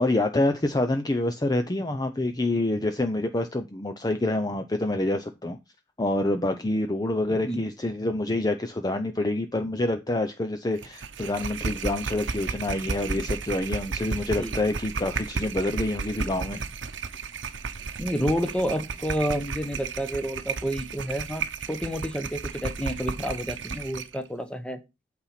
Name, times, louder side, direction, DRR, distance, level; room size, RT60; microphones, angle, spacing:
voice 1, 0.0-5.6 6.0-16.6, left 2 dB, 20° left, 0.6 m, -27 dB
sound 1, 10.8-24.2, right 4 dB, 80° right, 0.9 m, -33 dB
voice 2, 18.0-24.8, equal, 5° left, 1.0 m, -29 dB
8.6 x 4.2 x 5.8 m
head